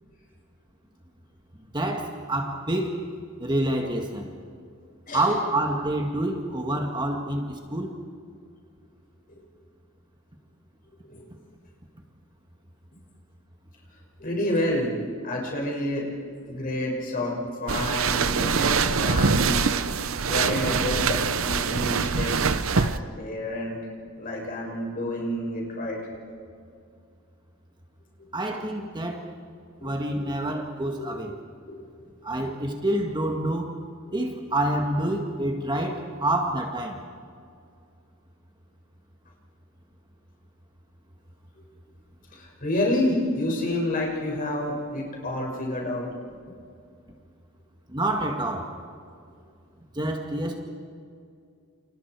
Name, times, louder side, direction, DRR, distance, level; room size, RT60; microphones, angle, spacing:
voice 1, 1.7-3.0 3.4-4.3 5.1-7.9 28.3-29.3 29.8-31.3 32.2-33.8 34.1-37.0 47.9-48.8 49.9-50.6, right 1 dB, 20° right, 2 dB, 1.9 m, -27 dB
voice 2, 14.2-14.9 15.2-16.1 16.4-19.7 20.3-23.9 24.2-26.0 28.2-28.6 29.8-30.0 31.0-31.1 31.7-32.1 41.6-41.7 42.3-46.1, left 1 dB, 40° left, -2 dB, 6.4 m, -29 dB
sound 1, 17.7-23.0, right 5 dB, 70° right, 0.8 m, -24 dB
29.0 x 29.0 x 4.7 m, 2.4 s
head